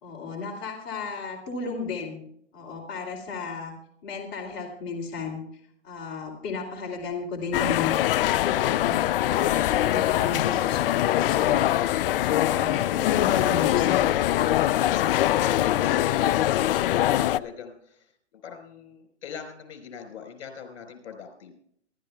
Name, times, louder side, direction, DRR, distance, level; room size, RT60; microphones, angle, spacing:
voice 1, 0.0-2.2 2.5-3.7 4.0-5.4 5.8-7.9 8.3-9.0 9.3-14.0, left 4 dB, 35° left, -1 dB, 2.7 m, -34 dB
sound 1, 7.5-17.4, left 13 dB, 55° left, 0.4 m, -23 dB
voice 2, 12.2-13.2 14.7-21.5, left 7 dB, 70° left, 4 dB, 4.4 m, -42 dB
27.0 x 12.5 x 2.3 m, 0.68 s
hypercardioid pair, 135°, 35 cm